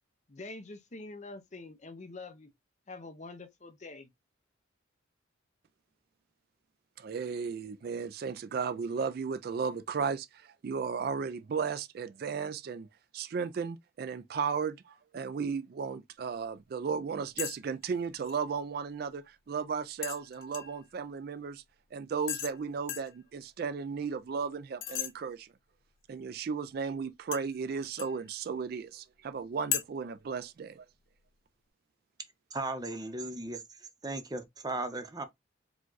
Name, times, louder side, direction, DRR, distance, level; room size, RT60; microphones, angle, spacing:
voice 1, 0.3-2.5 2.9-4.1, left 3 dB, 35° left, 0.6 m, -45 dB
voice 2, 7.0-12.9 13.1-21.6 21.9-25.5 26.1-30.9, right 5 dB, 50° right, 0.3 m, -35 dB
sound 1, 17.4-17.6 17.8-18.4 20.0-20.8 22.3-22.6 22.9-23.2 24.8-25.1 27.3-28.2 29.7-29.8, left 10 dB, 85° left, 0.8 m, -36 dB
voice 3, 32.5-33.6 34.0-35.3, right 2 dB, 20° right, 0.8 m, -36 dB
4.9 x 2.3 x 3.9 m
head